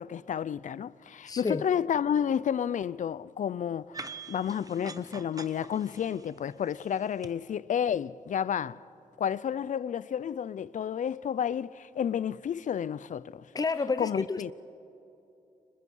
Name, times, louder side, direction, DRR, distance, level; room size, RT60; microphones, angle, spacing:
voice 1, 0.0-3.9 4.3-8.8 9.2-13.4 14.0-14.5, left 8 dB, 65° left, 0.5 m, -31 dB
voice 2, 1.3-1.6 13.5-14.5, left 4 dB, 25° left, 0.8 m, -30 dB
sound 1, 3.9-7.3, right 4 dB, 25° right, 1.0 m, -45 dB
30.0 x 26.0 x 5.5 m
wide cardioid pair, 115°, 14 cm